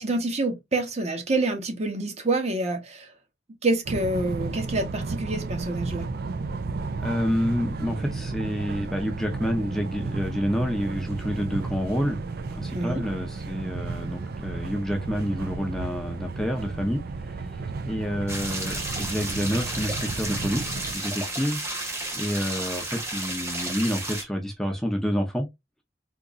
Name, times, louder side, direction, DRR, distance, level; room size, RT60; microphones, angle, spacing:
voice 1, 0.0-3.1 3.6-6.1 12.7-13.0, right 2 dB, 40° right, 0.9 m, -27 dB
sound 1, 3.8-20.9, right 3 dB, 60° right, 0.4 m, -33 dB
voice 2, 7.0-12.2 12.5-21.6 22.1-25.5, equal, ahead, 0.6 m, -28 dB
sound 2, 18.3-24.2, right 2 dB, 15° right, 1.0 m, -32 dB
3.7 x 2.8 x 2.5 m
head